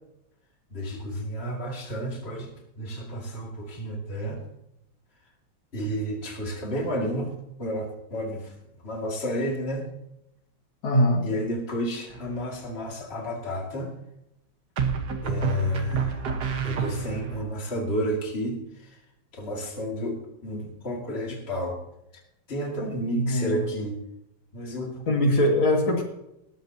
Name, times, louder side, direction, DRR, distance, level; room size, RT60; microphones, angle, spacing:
voice 1, 0.7-4.4 5.7-8.5 8.8-9.9 11.2-14.0 15.2-16.3 16.6-19.0 19.3-21.8 22.5-24.0 24.5-25.0, equal, 30° left, 0 dB, 2.4 m, -31 dB
voice 2, 10.8-11.2 23.1-23.7 25.1-26.0, left 1 dB, 75° left, 1 dB, 2.9 m, -22 dB
sound 1, 12.1-12.7 14.8-17.4, right 7 dB, 55° right, 1.7 m, -29 dB
19.5 x 13.5 x 2.8 m, 0.85 s
omnidirectional pair, 2.2 m